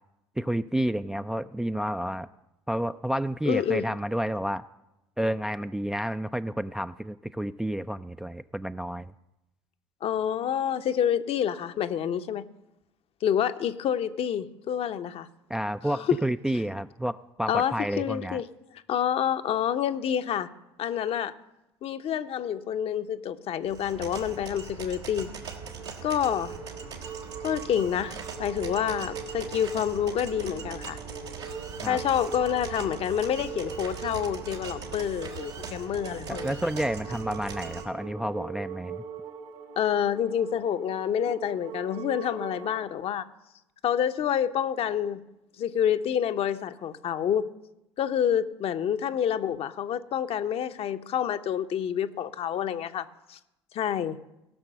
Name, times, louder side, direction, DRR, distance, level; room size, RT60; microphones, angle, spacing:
voice 1, 0.4-2.3 2.7-4.6 5.2-9.1 15.5-18.4 31.8-32.0 36.4-39.0, right 1 dB, 5° right, 9 dB, 0.3 m, -30 dB
voice 2, 3.5-3.8 10.0-12.4 13.2-15.3 16.1-16.2 17.5-18.4 18.9-20.5 20.8-21.3 21.8-25.3 26.0-26.5 27.4-31.0 31.8-36.5 39.8-43.3 43.8-45.2 45.6-47.5 48.0-53.4 53.7-54.2, left 9 dB, 45° left, 10 dB, 0.7 m, -28 dB
sound 1, 23.7-37.8, right 5 dB, 85° right, 1.7 m, -40 dB
sound 2, 25.3-42.9, right 6 dB, 60° right, 1.4 m, -41 dB
17.5 x 6.0 x 6.6 m, 0.92 s
figure-of-eight pair, 65°, 14 cm